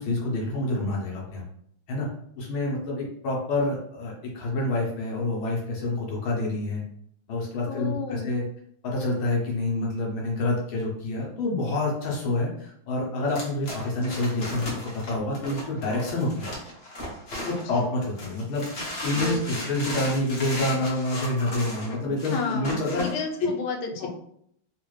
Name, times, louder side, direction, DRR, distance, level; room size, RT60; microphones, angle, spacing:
voice 1, 0.0-1.4 1.9-2.1 2.4-6.8 7.3-8.4 8.8-16.5 17.5-18.7 19.0-23.1 24.0-24.1, left 2 dB, 90° left, -2 dB, 1.9 m, -27 dB
voice 2, 7.6-8.3 17.6-17.9 19.1-19.7 22.1-24.1, left 5 dB, 70° left, 3 dB, 1.0 m, -32 dB
sound 1, 13.3-17.8 18.2-23.2, left 1 dB, 40° left, 0.9 m, -35 dB
4.2 x 2.4 x 3.1 m, 0.68 s
omnidirectional pair, 2.2 m